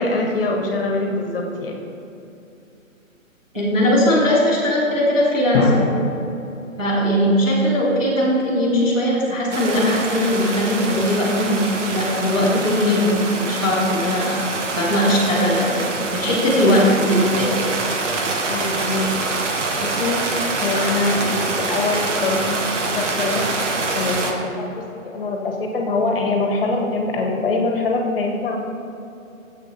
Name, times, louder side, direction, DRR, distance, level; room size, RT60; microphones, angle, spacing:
voice 1, 0.0-1.8 18.5-19.1 19.8-20.2 20.6-22.7 23.0-23.5 23.9-28.6, left 3 dB, 40° left, 1 dB, 1.5 m, -23 dB
voice 2, 3.5-5.9 6.8-14.4 14.8-17.5, left 1 dB, 5° right, -16 dB, 0.6 m, -19 dB
Drum, 5.5-7.8, left 2 dB, 20° left, 1.0 m, -24 dB
sound 1, 9.5-24.3, right 3 dB, 60° right, 1.3 m, -25 dB
9.9 x 7.6 x 4.2 m, 2.8 s
hypercardioid pair, 165°, 41 cm